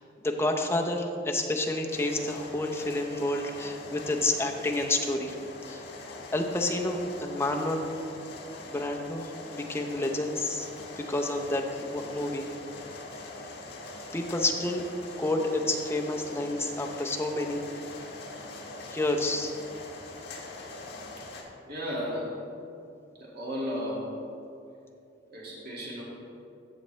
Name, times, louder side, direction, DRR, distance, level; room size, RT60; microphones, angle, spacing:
voice 1, 0.0-5.4 5.7-8.0 8.7-10.7 11.0-12.5 14.1-17.6 18.9-19.6, left 2 dB, 15° left, 2 dB, 0.7 m, -30 dB
sound 1, 1.9-21.4, left 2 dB, 55° left, 1.5 m, -43 dB
voice 2, 21.7-22.4 23.2-24.1 25.3-26.0, equal, 55° right, -5 dB, 2.0 m, -34 dB
13.5 x 7.0 x 3.2 m, 2.6 s
head